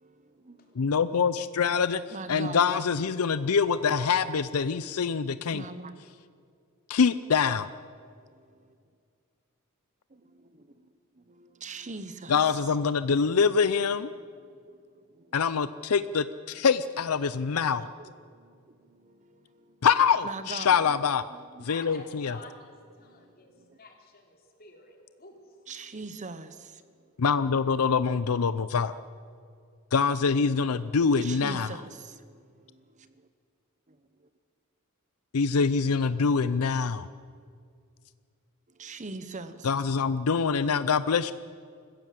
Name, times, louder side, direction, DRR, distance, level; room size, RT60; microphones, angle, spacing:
voice 1, 0.0-1.0 2.1-2.9 5.5-6.1 8.0-8.8 10.1-13.1 14.1-15.4 16.5-16.6 17.2-19.9 20.2-21.0 21.3-21.7 23.0-23.8 25.7-27.2 31.2-33.3 33.9-34.3 38.7-39.7, right 3 dB, 35° right, 11 dB, 1.0 m, -44 dB
voice 2, 0.8-2.0 2.3-5.6 6.9-7.7 12.3-14.1 15.3-17.9 19.8-21.2 21.7-22.4 27.2-29.0 29.9-31.7 35.3-37.1 39.6-41.3, left 5 dB, 85° left, 14 dB, 0.6 m, -25 dB
voice 3, 21.7-25.7, left 3 dB, 45° left, 2 dB, 3.6 m, -50 dB
25.5 x 15.5 x 7.6 m, 2.2 s
head